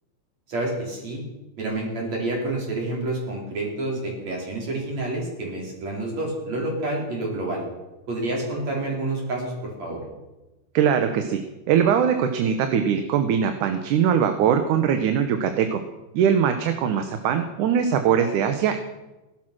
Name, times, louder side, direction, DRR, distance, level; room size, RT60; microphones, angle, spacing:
voice 1, 0.5-1.2 1.6-7.6 8.1-10.0, right 2 dB, 55° right, -2 dB, 5.7 m, -28 dB
voice 2, 10.7-11.4 11.7-15.8 16.1-18.8, right 8 dB, 75° right, 8 dB, 2.4 m, -21 dB
17.5 x 12.0 x 6.2 m, 1.1 s
omnidirectional pair, 3.6 m